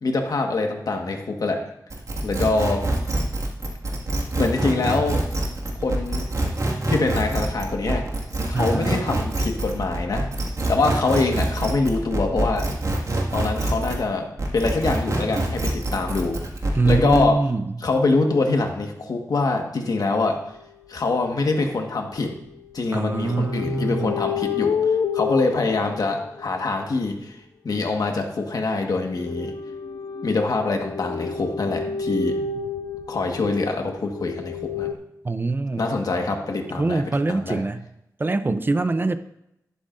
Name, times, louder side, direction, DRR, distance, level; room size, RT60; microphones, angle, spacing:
voice 1, 0.0-1.6 2.2-2.9 4.4-5.3 5.8-6.2 6.9-8.1 8.5-10.3 10.7-12.7 13.3-16.4 16.8-17.5 17.8-20.4 20.9-22.3 22.7-24.8 25.1-27.4 27.6-29.5 30.2-32.3 33.1-34.9 35.8-37.6, left 3 dB, 70° left, 3 dB, 1.5 m, -24 dB
sound 1, 1.9-14.1 14.4-17.3, right 2 dB, 55° right, 2.0 m, -25 dB
voice 2, 8.5-8.9 16.7-17.6 22.9-24.2 35.2-35.9 36.7-37.8 38.2-39.2, right 3 dB, 30° right, 11 dB, 0.6 m, -23 dB
sound 2, 20.4-20.5 21.2-21.4 22.3-26.7 28.9-34.9, left 6 dB, 90° left, 0.5 m, -30 dB
12.0 x 11.5 x 2.6 m, 0.82 s
wide cardioid pair, 100°, 7 cm